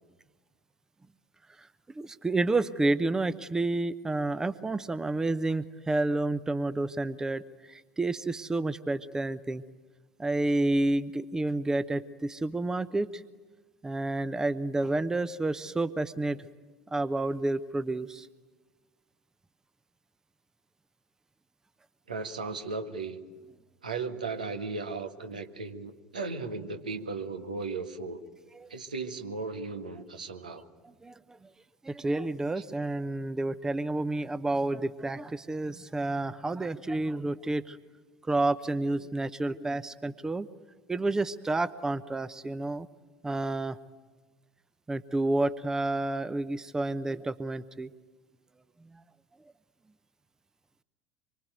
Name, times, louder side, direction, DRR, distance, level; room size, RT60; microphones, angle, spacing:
voice 1, 2.0-9.6 10.2-13.2 13.8-16.4 16.9-18.3 28.5-28.7 31.0-31.4 31.8-37.8 38.3-40.5 40.9-42.9 43.2-43.8 44.9-47.9, right 2 dB, 15° right, 15 dB, 0.9 m, -30 dB
voice 2, 22.1-23.2 23.8-28.2 28.7-30.7, right 4 dB, 75° right, 6 dB, 1.8 m, -36 dB
26.0 x 24.5 x 9.3 m, 1.3 s
figure-of-eight pair, 70°, 4 cm